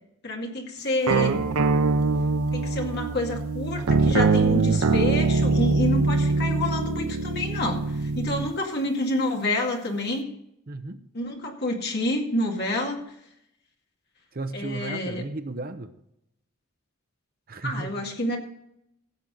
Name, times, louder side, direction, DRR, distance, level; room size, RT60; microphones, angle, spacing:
voice 1, 0.2-1.5 2.5-10.3 11.1-13.0 14.5-15.2 17.6-18.4, left 1 dB, 45° left, 1 dB, 2.1 m, -28 dB
sound 1, 1.1-8.5, right 3 dB, 80° right, 0.6 m, -23 dB
voice 2, 10.7-11.0 14.3-15.9 17.5-18.0, right 2 dB, 40° right, 9 dB, 0.7 m, -34 dB
16.0 x 7.5 x 3.9 m, 0.76 s
head